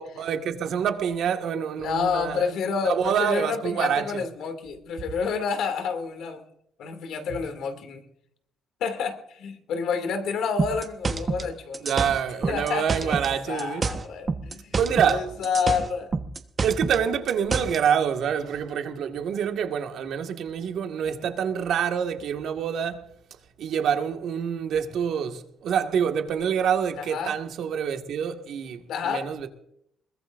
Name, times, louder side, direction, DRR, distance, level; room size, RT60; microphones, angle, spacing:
voice 1, 0.0-2.4 2.9-4.2 11.8-13.9 14.8-15.3 16.6-23.0 23.6-29.5, right 8 dB, 75° right, 1.9 m, -26 dB
voice 2, 1.8-6.4 6.8-8.0 8.8-11.9 12.5-13.2 13.5-14.8 15.1-16.1 27.0-27.4 28.9-29.3, left 6 dB, 80° left, 2.6 m, -29 dB
sound 1, 10.6-13.3 13.6-15.2 15.4-17.8, right 4 dB, 35° right, 1.3 m, -28 dB
22.0 x 21.0 x 2.6 m
cardioid pair, 90°, 0 cm